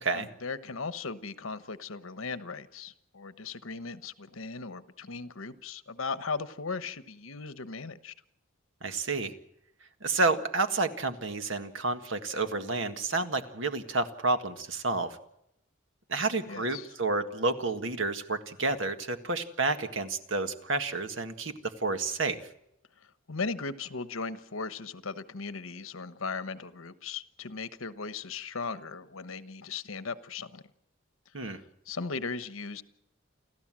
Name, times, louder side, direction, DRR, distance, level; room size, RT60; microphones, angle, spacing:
voice 1, 0.1-8.1 16.5-16.9 23.3-30.6 31.4-32.8, left 4 dB, 85° left, 13 dB, 1.2 m, -37 dB
voice 2, 8.8-9.3 10.0-15.2 16.1-21.5 21.8-22.4 31.3-31.6, right 3 dB, 65° right, 8 dB, 1.7 m, -30 dB
29.5 x 13.5 x 7.6 m, 0.80 s
head